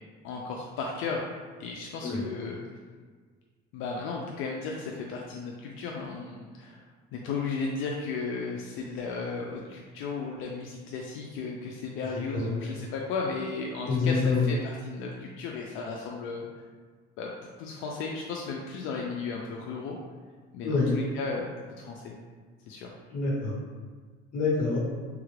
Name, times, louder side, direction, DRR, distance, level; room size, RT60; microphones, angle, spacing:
voice 1, 0.2-1.2 1.6-2.6 3.7-6.8 7.1-16.5 17.2-17.3 17.6-20.0 20.5-22.2 22.7-22.9, left 4 dB, 75° left, -1 dB, 0.4 m, -35 dB
voice 2, 13.9-14.4 20.6-20.9 23.1-23.5 24.3-24.8, left 4 dB, 40° left, -5 dB, 1.1 m, -26 dB
3.3 x 2.4 x 3.1 m, 1.5 s
cardioid pair, 170°, 21 cm